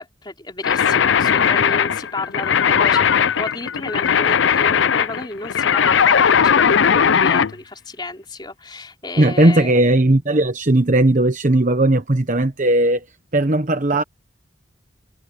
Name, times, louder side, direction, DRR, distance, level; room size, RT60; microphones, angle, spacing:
voice 1, 0.0-9.9, left 2 dB, 25° left, 3.7 m, -32 dB
sound 1, 0.6-7.5, left 7 dB, 70° left, 0.5 m, -17 dB
voice 2, 9.2-13.0 13.3-14.0, right 1 dB, 40° right, 1.0 m, -17 dB
head